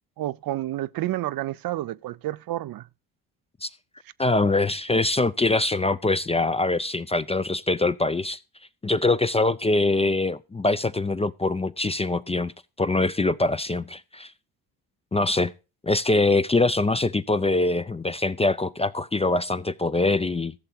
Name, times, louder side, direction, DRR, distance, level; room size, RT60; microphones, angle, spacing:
voice 1, 0.2-2.9, right 15 dB, 55° right, 0.5 m, -30 dB
voice 2, 4.2-8.4 8.8-12.5 12.8-14.3 15.1-15.5 15.8-20.5, left 2 dB, 15° left, 0.4 m, -23 dB
14.5 x 6.7 x 4.4 m
supercardioid pair, 60°, 44 cm